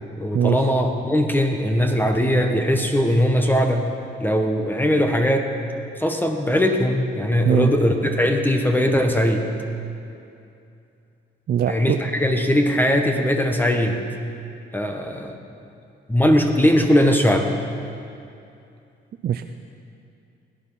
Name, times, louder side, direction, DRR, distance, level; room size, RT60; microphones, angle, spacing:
voice 1, 0.2-3.9 4.2-5.5 6.0-9.5 11.7-14.0 14.7-15.3 16.1-17.5, equal, 10° left, 3 dB, 1.3 m, -20 dB
voice 2, 11.5-12.0 19.2-19.5, right 9 dB, 55° right, 7 dB, 0.5 m, -21 dB
18.0 x 9.8 x 5.7 m, 2.6 s
cardioid pair, 90°, 20 cm